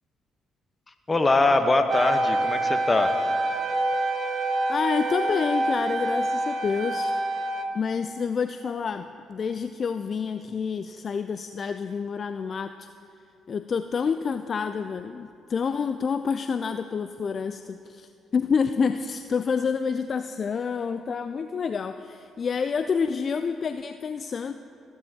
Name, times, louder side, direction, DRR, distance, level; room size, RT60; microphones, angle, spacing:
voice 1, 1.1-3.2, left 2 dB, 25° left, 8 dB, 0.9 m, -22 dB
sound 1, 1.9-7.6, right 2 dB, 50° right, 0.8 m, -26 dB
voice 2, 4.7-7.1 7.7-12.9 13.5-24.5, left 6 dB, 50° left, 10 dB, 0.3 m, -28 dB
15.0 x 12.0 x 2.8 m, 2.5 s
hypercardioid pair, 45°, 0 cm